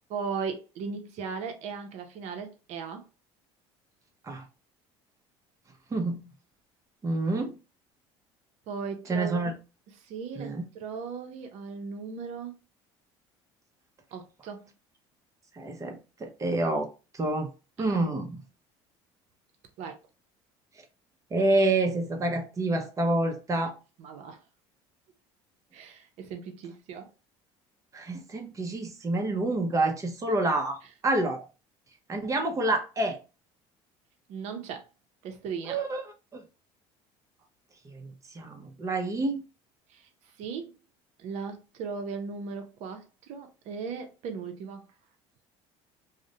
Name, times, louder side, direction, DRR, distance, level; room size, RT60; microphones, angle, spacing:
voice 1, 0.1-3.0 8.7-9.5 10.0-12.5 14.1-14.7 17.8-18.0 19.8-19.9 24.0-24.4 25.7-27.1 34.3-34.9 35.2-35.8 39.9-40.1 40.4-40.7 41.2-44.8, right 5 dB, 65° right, 0.6 m, -37 dB
voice 2, 5.9-6.3 7.0-7.5 9.1-9.6 10.4-10.7 15.6-16.9 17.1-17.5 17.8-18.4 21.3-23.8 27.9-30.8 31.0-31.4 32.1-33.2 35.7-36.0 36.3-36.4 37.9-38.1 38.3-39.4, right 2 dB, 25° right, 0.6 m, -28 dB
2.4 x 2.1 x 2.7 m
supercardioid pair, 95°, 13 cm